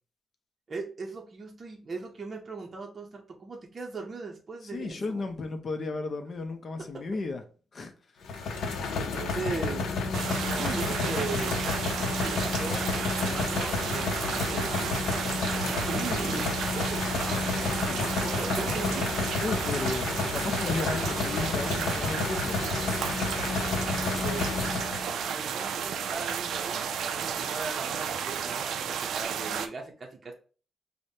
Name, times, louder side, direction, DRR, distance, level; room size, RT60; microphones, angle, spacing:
voice 1, 0.7-5.2 8.9-9.9 10.6-11.6 12.0-14.9 15.8-16.6 17.9-19.3 24.2-24.8 25.3-26.9 27.1-30.3, right 4 dB, 35° right, 0.6 m, -38 dB
voice 2, 4.7-7.4 7.7-7.9 10.4-11.3 17.2-18.1 19.4-22.6, left 3 dB, 40° left, 0.6 m, -35 dB
sound 1, 8.3-25.1, left 4 dB, 85° left, 0.6 m, -30 dB
sound 2, 10.1-29.7, right 7 dB, 85° right, 0.3 m, -33 dB
4.9 x 2.1 x 2.7 m
wide cardioid pair, 150°, 0 cm